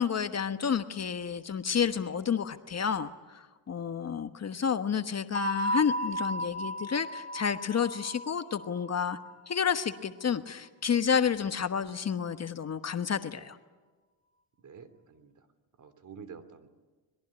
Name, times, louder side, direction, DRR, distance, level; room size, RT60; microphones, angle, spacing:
voice 1, 0.0-3.1 3.7-9.2 9.5-13.6, left 7 dB, 35° left, 9 dB, 1.3 m, -30 dB
voice 2, 4.0-4.3 14.6-15.3 15.8-16.7, right 6 dB, 40° right, 12 dB, 2.9 m, -49 dB
sound 1, 5.3-10.0, equal, 20° left, 3.3 m, -34 dB
25.5 x 21.5 x 10.0 m, 1.3 s
cardioid pair, 95°, 46 cm